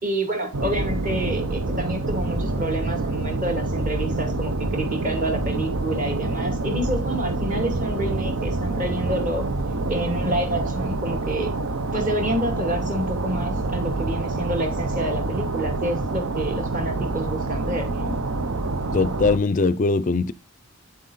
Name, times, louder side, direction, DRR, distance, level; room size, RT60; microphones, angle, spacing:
voice 1, 0.0-9.5 9.9-11.5 11.9-18.2, right 1 dB, 40° right, 2.5 m, -28 dB
sound 1, 0.5-19.4, right 2 dB, 90° right, 0.8 m, -27 dB
voice 2, 18.9-20.3, left 3 dB, 35° left, 0.4 m, -21 dB
9.0 x 7.7 x 4.0 m
head